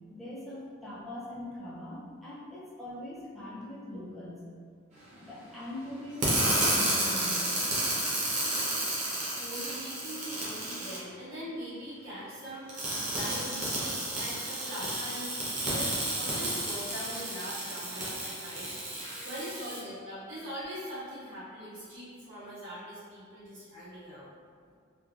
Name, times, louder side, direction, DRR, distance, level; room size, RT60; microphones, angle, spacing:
voice 1, 0.1-4.4 5.2-7.5 18.5-18.6 19.0-19.6, left 1 dB, ahead, -9 dB, 0.5 m, -42 dB
sound 1, 6.2-11.0 12.7-19.8, right 1 dB, 35° right, 0.6 m, -31 dB
voice 2, 9.3-12.7 13.1-18.7 19.2-24.3, equal, 70° right, -11 dB, 1.2 m, -41 dB
3.1 x 2.2 x 2.4 m, 2.1 s
head